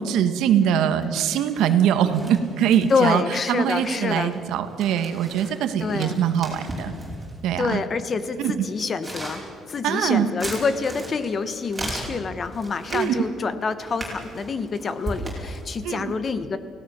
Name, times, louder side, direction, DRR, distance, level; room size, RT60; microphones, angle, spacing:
voice 1, 0.0-3.2 3.5-6.9 7.4-7.8 8.4-8.7 9.8-10.3 12.9-13.1 15.8-16.1, right 9 dB, 80° right, 9 dB, 1.7 m, -22 dB
sound 1, 0.5-1.1 1.4-7.5 8.2-8.3 8.8-13.2 13.8-15.8, right 1 dB, 10° right, 5.1 m, -37 dB
voice 2, 2.9-4.3 5.8-6.2 7.6-9.4 9.7-16.6, left 4 dB, 30° left, 12 dB, 1.1 m, -27 dB
29.5 x 17.0 x 7.1 m, 2.1 s
cardioid pair, 175°, 0 cm